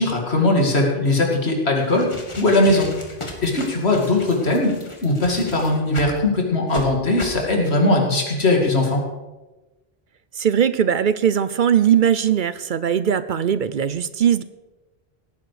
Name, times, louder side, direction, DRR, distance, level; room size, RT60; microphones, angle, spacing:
voice 1, 0.0-2.9 3.4-4.7 5.0-9.0, left 2 dB, 85° left, 1 dB, 2.7 m, -19 dB
sound 1, 1.8-6.2 6.7-6.8 7.2-7.4, left 1 dB, 30° left, 1.8 m, -35 dB
voice 2, 10.4-14.4, right 8 dB, 55° right, 14 dB, 0.7 m, -19 dB
17.0 x 9.8 x 5.0 m, 1.1 s
omnidirectional pair, 1.1 m